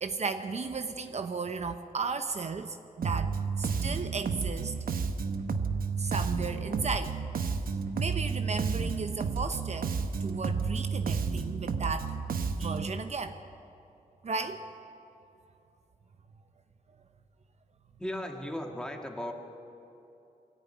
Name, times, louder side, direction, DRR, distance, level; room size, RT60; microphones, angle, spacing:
voice 1, 0.0-4.8 6.0-7.2 7.9-9.9 10.2-12.2 12.5-13.4 14.2-14.6, right 4 dB, 50° right, 7 dB, 0.8 m, -35 dB
Bass guitar, 3.0-12.9, right 5 dB, 85° right, 1.0 m, -31 dB
voice 2, 18.0-19.3, left 1 dB, 5° left, 2 dB, 2.0 m, -36 dB
22.0 x 14.0 x 9.4 m, 2.8 s
wide cardioid pair, 140°, 14 cm